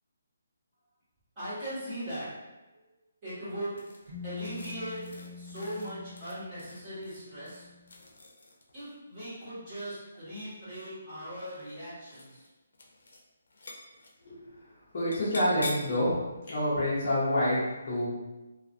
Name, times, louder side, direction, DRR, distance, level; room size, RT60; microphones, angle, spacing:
voice 1, 1.3-2.4 3.2-3.8 4.2-7.7 8.7-12.4, equal, 20° right, -14 dB, 1.3 m, -39 dB
sound 1, 3.8-8.8 10.0-10.7 11.3-11.8 12.0-12.5 12.7-13.2 13.5-14.1 15.1-16.0, left 2 dB, 75° left, 0.5 m, -45 dB
sound 2, 4.1-7.9, left 4 dB, 40° right, 0.8 m, -46 dB
voice 2, 14.9-16.2 16.5-18.1, left 1 dB, 35° left, -8 dB, 0.7 m, -27 dB
2.5 x 2.4 x 2.5 m, 1.1 s
hypercardioid pair, 175°, 0 cm